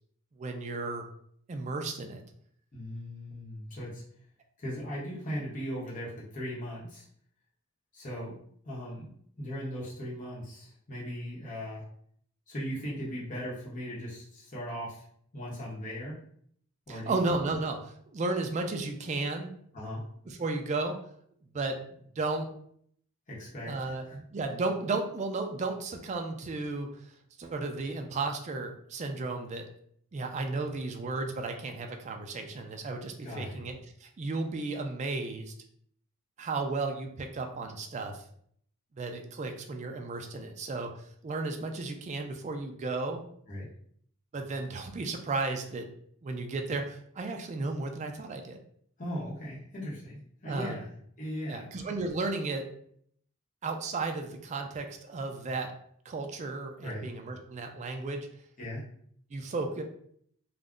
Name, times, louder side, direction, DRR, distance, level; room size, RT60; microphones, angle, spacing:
voice 1, 0.4-1.1 1.5-2.2 16.9-19.5 20.3-21.0 21.5-22.5 23.7-27.1 27.4-29.6 30.1-33.7 34.0-35.5 36.4-38.2 38.9-40.9 41.2-43.2 44.3-45.9 46.2-48.6 50.4-50.8 51.5-52.7 53.6-55.7 56.1-58.3 59.3-59.8, right 3 dB, 35° right, 4 dB, 0.3 m, -34 dB
voice 2, 2.7-4.0 4.6-7.1 7.9-8.4 8.6-9.1 9.4-11.8 12.5-15.0 15.3-16.2 16.9-17.2 19.7-20.1 23.3-24.2 33.2-33.6 43.5-43.7 49.0-50.9 51.2-51.7 56.8-57.1 58.6-58.9, equal, 40° left, -6 dB, 0.8 m, -38 dB
2.4 x 2.0 x 3.5 m, 0.65 s
head